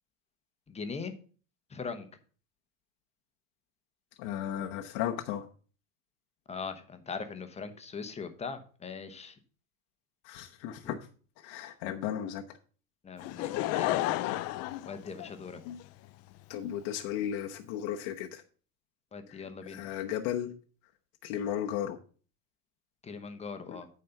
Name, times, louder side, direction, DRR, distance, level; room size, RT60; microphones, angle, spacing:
voice 1, 0.7-1.1 1.7-2.1 6.5-9.4 10.8-10.9 13.0-14.2 14.9-15.6 19.1-19.8 23.0-23.9, left 5 dB, 15° left, 8 dB, 1.0 m, -40 dB
voice 2, 4.2-5.5 10.2-11.0 11.4-12.4 15.6-15.8 16.5-18.4 19.3-20.5 21.2-22.0 23.7-23.8, left 10 dB, 60° left, 2 dB, 1.0 m, -35 dB
Laughter / Crowd, 13.2-15.8 16.5-16.6, left 16 dB, 35° left, 0.4 m, -31 dB
9.3 x 4.3 x 6.8 m, 0.41 s
supercardioid pair, 130°, 45 cm